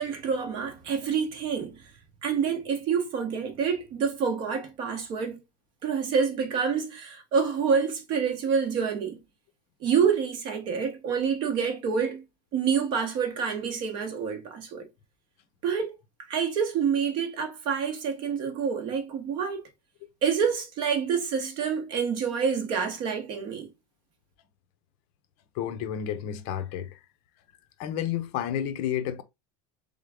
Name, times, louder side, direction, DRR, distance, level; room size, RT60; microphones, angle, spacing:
voice 1, 0.0-1.8 2.2-5.4 5.8-9.2 9.8-12.2 12.5-14.9 15.6-15.9 16.3-19.6 20.2-23.7, right 6 dB, 45° right, 1.1 m, -27 dB
voice 2, 25.5-27.0 27.8-29.2, left 10 dB, 55° left, 0.6 m, -31 dB
3.7 x 3.6 x 3.5 m
cardioid pair, 175°, 11 cm